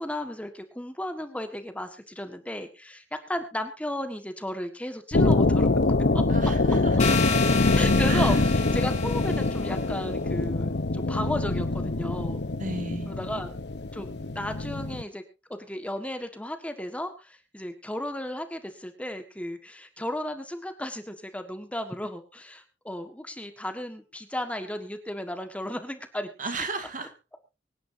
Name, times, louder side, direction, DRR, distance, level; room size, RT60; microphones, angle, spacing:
voice 1, 0.0-5.7 6.1-6.2 7.7-12.4 13.1-13.5 13.9-15.2 15.5-26.3, left 1 dB, 10° left, 7 dB, 1.6 m, -34 dB
sound 1, 5.1-15.0, left 2 dB, 65° left, 0.9 m, -24 dB
voice 2, 6.3-7.2 7.5-8.4 11.0-11.3 12.6-13.1 26.4-27.1, right 3 dB, 45° right, 7 dB, 2.1 m, -36 dB
sound 2, 7.0-9.9, left 6 dB, 40° left, 3.0 m, -31 dB
24.5 x 10.0 x 2.7 m, 0.29 s
head